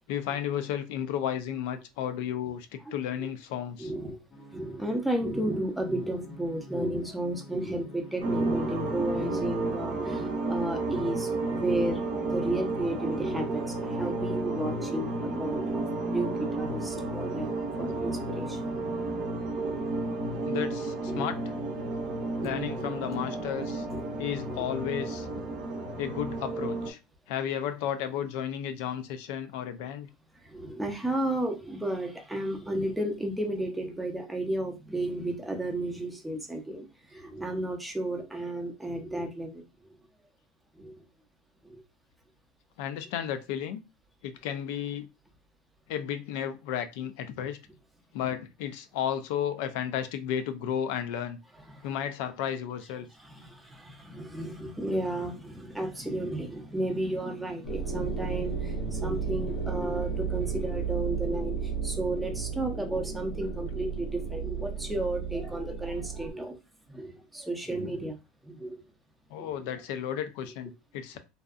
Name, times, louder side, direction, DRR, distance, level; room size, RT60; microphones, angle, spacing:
voice 1, 0.1-3.9 20.4-21.4 22.4-23.9 24.2-25.3 26.0-27.0 27.3-30.1 42.8-43.8 44.2-45.1 45.9-47.6 48.1-51.4 51.8-53.1 69.3-71.2, left 9 dB, 70° left, 0.4 m, -33 dB
voice 2, 3.8-4.2 4.5-19.0 19.6-19.8 21.1-21.2 22.4-22.5 24.2-24.6 30.4-36.9 37.1-39.6 40.8-41.0 41.6-41.8 51.7-51.9 53.2-66.6 66.9-68.2 68.4-68.8 69.4-69.5, right 1 dB, 5° right, 0.5 m, -33 dB
sound 1, 4.3-9.8, right 2 dB, 35° left, 0.7 m, -49 dB
sound 2, 8.2-26.9, right 2 dB, 50° right, 0.6 m, -32 dB
sound 3, 57.6-66.3, right 6 dB, 85° left, 0.8 m, -33 dB
2.6 x 2.1 x 2.4 m
supercardioid pair, 135°, 0 cm